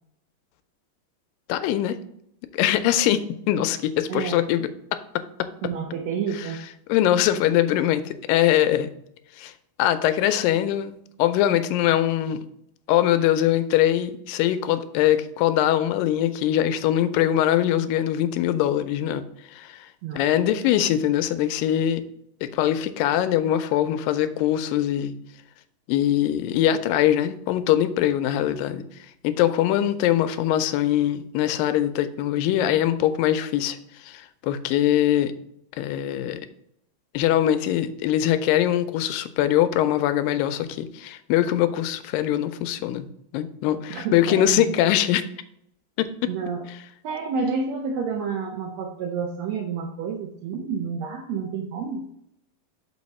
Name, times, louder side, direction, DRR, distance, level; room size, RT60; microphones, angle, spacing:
voice 1, 1.5-2.0 2.5-4.7 5.2-5.5 6.9-8.9 9.4-9.5 9.8-12.4 12.9-19.2 19.5-19.9 20.1-22.0 22.4-25.2 25.9-28.8 29.2-35.3 35.8-36.4 37.1-43.1 43.3-45.2 46.0-46.3, left 12 dB, 90° left, 11 dB, 2.3 m, -22 dB
voice 2, 4.1-4.4 5.6-6.7 20.0-20.3 43.9-44.7 46.3-46.7 47.0-52.1, right 5 dB, 85° right, 4 dB, 1.5 m, -29 dB
7.1 x 4.6 x 4.2 m, 0.76 s
omnidirectional pair, 3.9 m